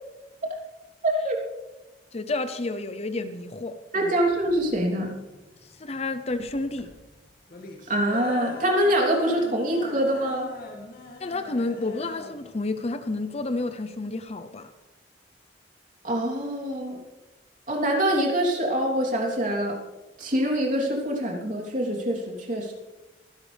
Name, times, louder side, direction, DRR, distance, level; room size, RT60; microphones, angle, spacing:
voice 1, 1.0-1.4 3.9-5.1 7.9-10.5 16.0-17.0 17.7-19.8 20.2-22.7, right 1 dB, 45° right, 3.4 m, -25 dB
voice 2, 2.1-4.1 5.8-7.0 11.2-14.7, left 2 dB, 35° left, 0.7 m, -30 dB
sound 1, 4.3-14.3, left 1 dB, 55° left, 2.3 m, -41 dB
24.5 x 11.5 x 3.5 m
head